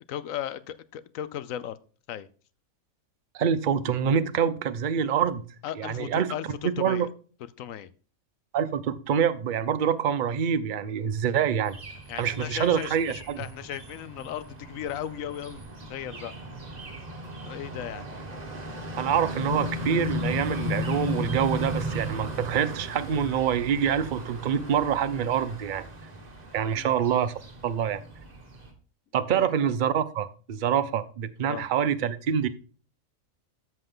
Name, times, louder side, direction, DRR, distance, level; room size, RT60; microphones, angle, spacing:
voice 1, 0.1-1.8 2.1-2.3 5.6-7.1 7.6-7.9 12.1-15.6 15.9-16.3 17.5-18.1 26.7-27.0 29.3-29.5 31.5-31.7, left 10 dB, 75° left, 1.0 m, -36 dB
voice 2, 3.3-5.4 5.8-6.3 6.6-7.1 8.5-11.8 12.2-13.5 19.0-25.9 26.5-27.3 27.6-28.0 29.1-32.5, right 8 dB, 50° right, 0.6 m, -26 dB
sound 1, 11.6-28.7, left 1 dB, 30° right, 1.4 m, -36 dB
13.5 x 5.4 x 3.8 m
omnidirectional pair, 1.4 m